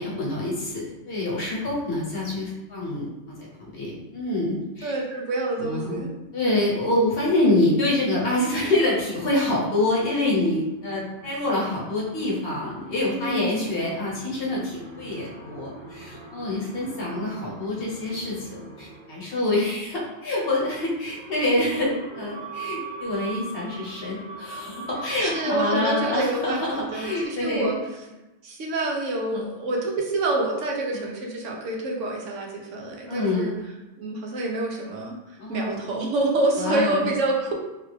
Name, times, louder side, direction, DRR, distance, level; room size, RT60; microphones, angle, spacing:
voice 1, 0.0-3.4 3.7-4.9 5.6-6.0 6.3-27.8 29.3-29.5 30.9-31.1 33.1-33.6 35.4-35.8 36.6-37.1, left 2 dB, 55° left, -5 dB, 1.0 m, -26 dB
voice 2, 4.8-6.1 13.1-13.8 25.2-27.8 28.4-33.5 34.0-35.2 35.5-37.5, right 2 dB, 80° right, -1 dB, 1.0 m, -27 dB
sound 1, 10.3-19.5 20.2-27.3, right 4 dB, 55° right, 1.0 m, -41 dB
3.5 x 2.3 x 3.2 m, 1.0 s
omnidirectional pair, 1.3 m